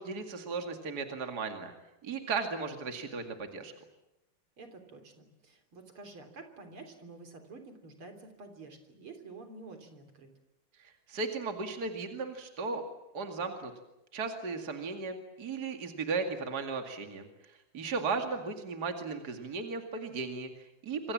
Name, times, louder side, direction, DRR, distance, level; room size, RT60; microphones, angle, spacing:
voice 1, 0.0-1.7 2.0-3.7 10.8-12.8 13.1-13.7 14.1-21.1, right 4 dB, 45° right, 5 dB, 2.8 m, -36 dB
voice 2, 4.6-10.3 17.9-18.2, right 3 dB, 75° right, 6 dB, 4.4 m, -49 dB
26.5 x 25.0 x 7.5 m, 0.91 s
omnidirectional pair, 2.4 m